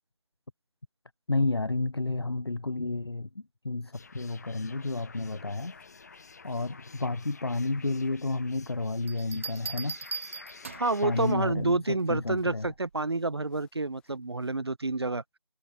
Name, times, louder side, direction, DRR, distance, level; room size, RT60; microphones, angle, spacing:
voice 1, 1.3-3.3 3.6-5.7 6.4-10.0 11.0-11.8 12.1-12.7, left 2 dB, 45° left, 0.5 m, -31 dB
sound 1, 3.9-11.3, left 4 dB, 25° left, 3.0 m, -51 dB
sound 2, 5.7-14.6, left 11 dB, 5° left, 6.8 m, -73 dB
sound 3, 9.1-11.0 12.6-13.0, right 5 dB, 20° right, 2.3 m, -39 dB
voice 2, 10.7-15.2, right 3 dB, 45° right, 0.6 m, -29 dB
figure-of-eight pair, 170°, 19 cm